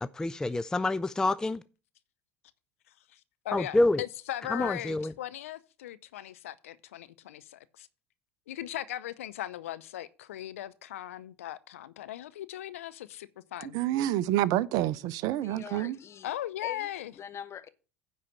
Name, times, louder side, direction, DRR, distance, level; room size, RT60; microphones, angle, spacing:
voice 1, 0.0-1.6 3.5-4.0 4.5-5.1, left 2 dB, 10° left, 0.3 m, -27 dB
voice 2, 3.1-7.9 8.5-13.8 16.2-17.1, left 13 dB, 75° left, 0.5 m, -38 dB
voice 3, 13.7-16.0, right 13 dB, 55° right, 0.5 m, -28 dB
voice 4, 15.4-16.3 16.6-16.9 17.2-17.7, left 8 dB, 35° left, 1.0 m, -43 dB
9.9 x 4.2 x 7.2 m
figure-of-eight pair, 70°, 8 cm